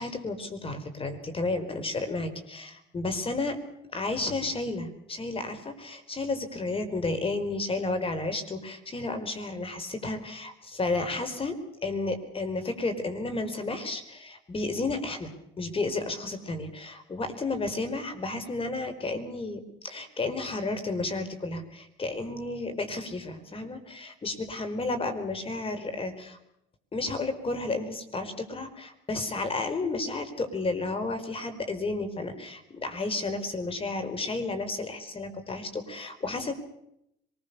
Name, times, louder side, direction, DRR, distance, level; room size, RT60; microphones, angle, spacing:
voice 1, 0.0-3.6 3.9-11.5 11.8-15.3 15.6-26.4 26.9-36.5, left 3 dB, 30° left, 8 dB, 4.5 m, -32 dB
25.5 x 20.5 x 6.9 m, 0.79 s
supercardioid pair, 80°, 19 cm